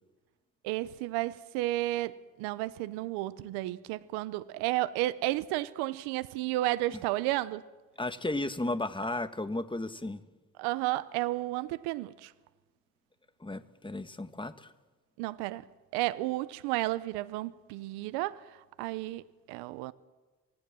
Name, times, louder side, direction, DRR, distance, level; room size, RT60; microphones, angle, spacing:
voice 1, 0.6-7.6 10.6-12.3 15.2-15.7 15.9-18.4 18.8-19.9, right 17 dB, 90° right, 0.7 m, -32 dB
voice 2, 8.0-10.2 13.4-14.7, left 2 dB, 10° left, 1.6 m, -34 dB
25.0 x 18.5 x 7.5 m
hypercardioid pair, 50°, 40 cm